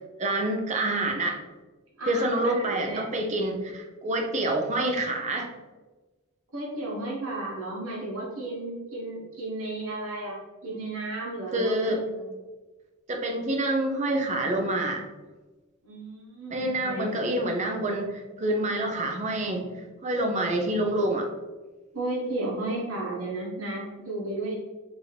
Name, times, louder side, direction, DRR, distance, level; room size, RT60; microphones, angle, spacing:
voice 1, 0.2-1.4 2.1-5.5 11.5-12.0 13.1-15.0 16.5-19.7 20.0-21.3, right 1 dB, 35° right, 2 dB, 0.6 m, -27 dB
voice 2, 2.0-3.0 6.5-11.8 12.1-12.3 15.8-17.3 21.9-24.5, right 2 dB, 70° right, -4 dB, 1.2 m, -33 dB
5.3 x 2.7 x 3.2 m, 1.2 s
head